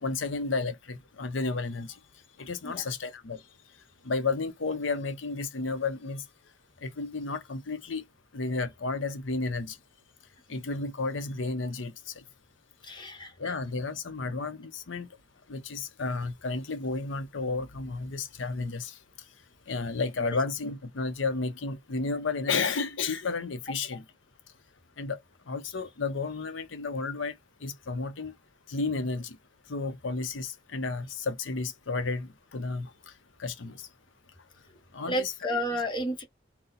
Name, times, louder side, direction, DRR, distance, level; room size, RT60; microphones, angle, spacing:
voice 1, 0.0-2.0 2.4-3.4 4.0-6.2 6.8-8.0 8.3-9.8 10.5-12.1 13.4-15.1 15.5-19.0 19.7-24.0 25.0-25.2 25.5-27.3 27.6-28.3 28.7-29.4 29.7-32.9 33.4-33.9 34.9-35.3, left 3 dB, 80° left, 0.7 m, -32 dB
voice 2, 12.8-13.5 20.2-20.4 35.0-36.2, equal, 25° left, 1.0 m, -32 dB
4.1 x 2.2 x 3.9 m
head